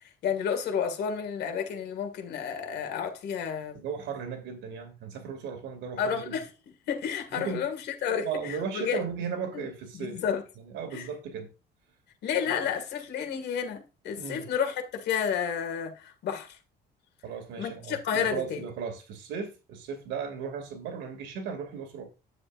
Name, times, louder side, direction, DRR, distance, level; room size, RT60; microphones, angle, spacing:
voice 1, 0.2-3.8 6.0-6.5 6.9-9.0 9.5-9.6 9.9-10.4 10.9-11.1 12.2-16.6 17.6-18.6, left 7 dB, 65° left, 2.1 m, -31 dB
voice 2, 3.7-6.4 7.3-7.6 8.2-10.2 10.6-11.5 12.5-12.7 14.2-14.5 17.2-22.0, right 6 dB, 85° right, 2.5 m, -36 dB
9.8 x 7.8 x 2.5 m
cardioid pair, 145°, 18 cm